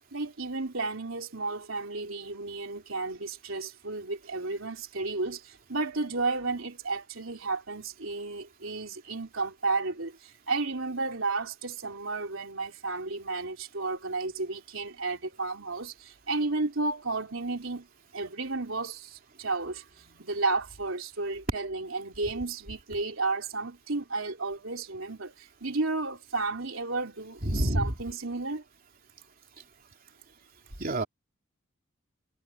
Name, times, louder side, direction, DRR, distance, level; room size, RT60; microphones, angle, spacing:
voice 1, 0.1-17.9 18.1-28.6, right 3 dB, 80° right, 3.4 m, -33 dB
voice 2, 27.4-27.9 30.8-31.0, right 1 dB, 45° right, 3.3 m, -27 dB
head